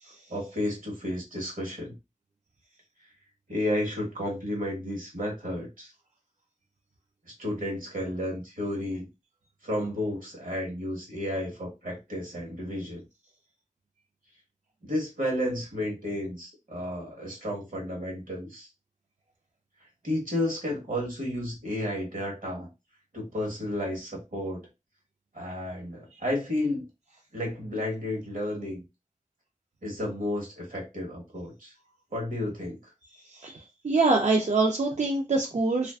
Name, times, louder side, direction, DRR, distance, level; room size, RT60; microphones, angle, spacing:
voice 1, 0.3-1.9 3.5-5.9 7.4-9.1 9.6-13.0 14.8-18.7 20.0-22.7 23.1-24.6 25.3-26.8 27.3-28.8 29.8-31.7 32.1-32.8, left 1 dB, 75° right, -2 dB, 1.2 m, -32 dB
voice 2, 33.3-35.9, right 3 dB, 55° right, 0 dB, 0.4 m, -25 dB
2.5 x 2.3 x 2.2 m, 0.25 s
wide cardioid pair, 55°, 14 cm